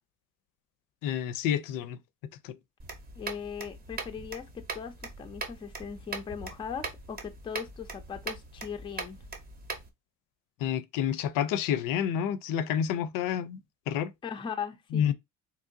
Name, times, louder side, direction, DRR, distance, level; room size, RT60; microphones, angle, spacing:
voice 1, 1.0-2.0 2.4-2.6 10.6-13.6 13.9-14.1 14.9-15.1, left 9 dB, 85° left, 0.5 m, -29 dB
sound 1, 2.8-9.9, right 3 dB, 30° right, 0.6 m, -41 dB
voice 2, 3.2-4.5 4.7-9.2 14.2-15.1, left 7 dB, 15° left, 0.4 m, -39 dB
3.7 x 2.9 x 2.5 m
cardioid pair, 165°, 32 cm